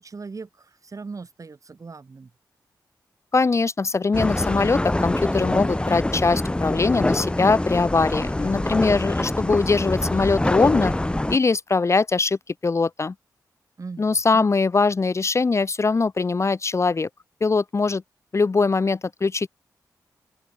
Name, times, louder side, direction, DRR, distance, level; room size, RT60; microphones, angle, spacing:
voice 1, 0.0-2.3 13.8-14.5, right 4 dB, 50° right, 7.5 m, -39 dB
voice 2, 3.3-10.9 11.3-13.1 14.0-17.1 17.4-18.0 18.3-19.5, left 4 dB, 40° left, 0.9 m, -21 dB
sound 1, 4.1-11.4, left 1 dB, 15° left, 0.8 m, -25 dB
open air
cardioid pair, 60°, 7 cm